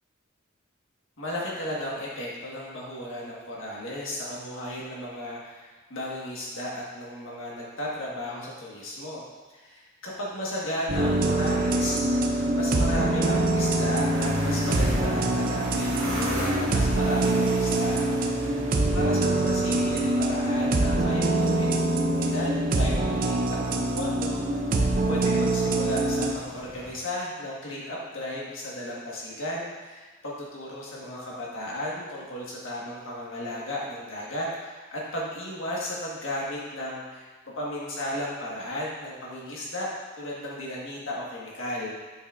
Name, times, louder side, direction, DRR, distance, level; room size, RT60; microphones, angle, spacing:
voice 1, 1.2-9.2 9.5-18.0 18.9-24.4 24.7-37.2 37.5-39.9 40.2-41.9, left 1 dB, 65° left, -5 dB, 1.7 m, -34 dB
sound 1, 10.9-26.3, right 2 dB, 45° right, 0.6 m, -24 dB
sound 2, 10.9-26.9, equal, 70° right, 2.0 m, -37 dB
8.4 x 6.0 x 2.6 m, 1.3 s
head